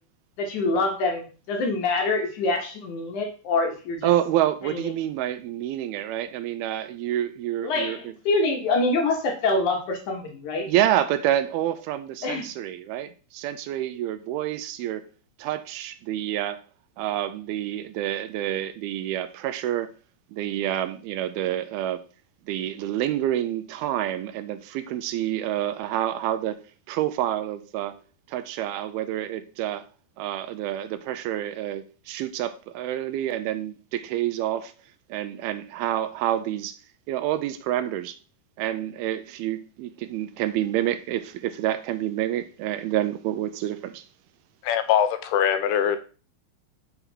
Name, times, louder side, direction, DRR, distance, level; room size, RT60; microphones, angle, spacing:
voice 1, 0.4-4.1 4.7-4.8 7.6-10.7 12.2-12.4, left 3 dB, 65° left, 2.2 m, -25 dB
voice 2, 4.0-8.1 10.7-15.1 15.4-16.6 17.0-19.9 20.3-22.0 22.5-26.6 26.9-28.0 28.3-29.9 30.2-34.7 35.1-36.8 37.1-38.2 38.6-44.1, right 12 dB, 80° right, 2.4 m, -28 dB
voice 3, 44.6-46.0, left 9 dB, 85° left, 2.8 m, -22 dB
6.8 x 3.8 x 6.1 m
omnidirectional pair, 4.5 m